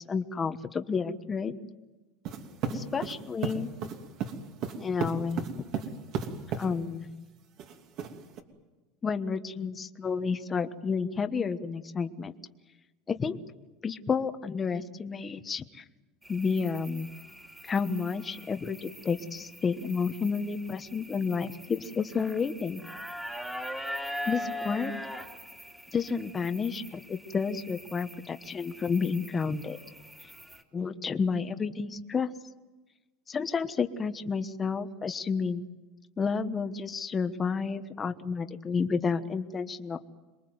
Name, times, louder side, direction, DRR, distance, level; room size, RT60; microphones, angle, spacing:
voice 1, 0.0-1.5 2.7-3.7 4.8-5.4 6.6-7.1 9.0-12.3 13.1-13.4 13.8-15.8 16.3-17.1 17.6-22.8 24.2-24.9 25.9-29.8 30.7-32.3 33.3-35.7 36.2-40.0, left 5 dB, 20° left, 9 dB, 1.2 m, -30 dB
sound 1, 2.2-6.7 7.6-8.4, right 6 dB, 50° right, 2.9 m, -34 dB
sound 2, 16.2-30.6, equal, 5° right, 2.5 m, -42 dB
27.0 x 22.5 x 8.0 m, 1.2 s
supercardioid pair, 145°, 0 cm